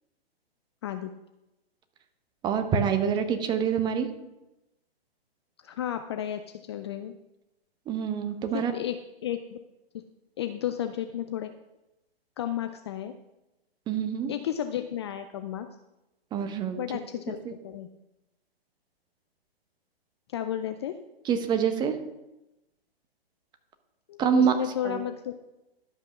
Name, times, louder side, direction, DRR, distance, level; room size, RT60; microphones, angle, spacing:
voice 1, 2.4-4.1 7.9-8.7 13.9-14.3 16.3-16.8 17.5-17.6 21.3-22.0 24.2-24.5 24.8-25.0, right 7 dB, 15° right, 8 dB, 0.8 m, -26 dB
voice 2, 5.6-6.4 6.7-7.2 8.5-9.6 9.9-10.0 10.4-11.5 12.4-13.1 14.3-15.7 16.8-17.9 20.3-21.0 24.1-25.3, left 11 dB, 25° left, 8 dB, 0.4 m, -33 dB
12.5 x 5.5 x 6.0 m, 0.95 s
hypercardioid pair, 130°, 31 cm